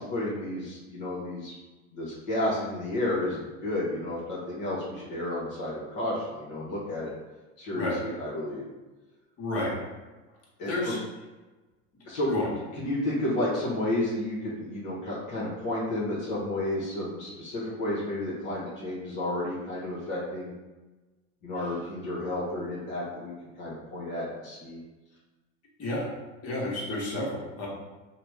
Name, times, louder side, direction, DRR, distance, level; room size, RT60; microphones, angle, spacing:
voice 1, 0.0-1.5 1.9-7.1 7.6-8.7 10.6-10.9 12.0-20.5 21.4-24.8, left 1 dB, 55° left, -7 dB, 1.2 m, -31 dB
voice 2, 9.4-9.8 10.7-11.0 12.3-12.5 25.8-26.1 26.4-27.7, left 1 dB, 40° left, -5 dB, 1.3 m, -30 dB
2.9 x 2.4 x 3.5 m, 1.2 s
hypercardioid pair, 85°, 36 cm